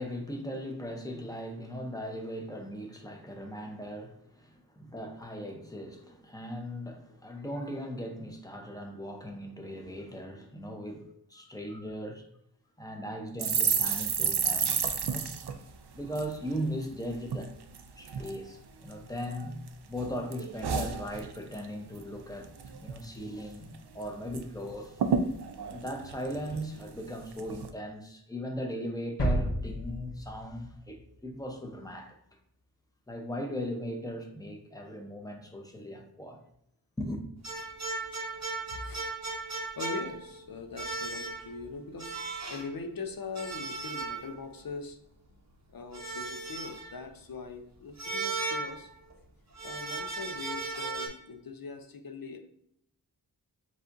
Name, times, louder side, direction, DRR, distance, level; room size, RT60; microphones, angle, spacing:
voice 1, 0.0-12.3 12.8-15.3 15.9-17.5 17.9-19.6 19.9-25.0 25.7-32.2 33.1-36.4 37.0-37.3, equal, 10° left, 0.8 m, -38 dB
sound 1, 13.4-16.9 17.3-17.5 17.7-18.4 18.9-19.7 20.0-21.7 22.0-22.2 22.4-23.0 23.4-23.5 23.7-24.4 24.7-24.8 25.0-26.9 27.4-27.7, right 6 dB, 70° right, 0.5 m, -31 dB
sound 2, 29.2-31.0 31.3-31.4, equal, 75° left, 1.1 m, -31 dB
sound 3, 37.4-40.4 40.8-41.6 42.0-42.7 43.4-44.6 45.9-47.0 48.0-49.1 49.5-51.1, right 3 dB, 40° right, 0.9 m, -36 dB
voice 2, 38.7-39.1 39.8-42.1 42.5-45.0 45.7-48.9 49.6-52.4, left 4 dB, 60° left, 0.6 m, -41 dB
7.1 x 2.4 x 2.6 m
wide cardioid pair, 65°, 41 cm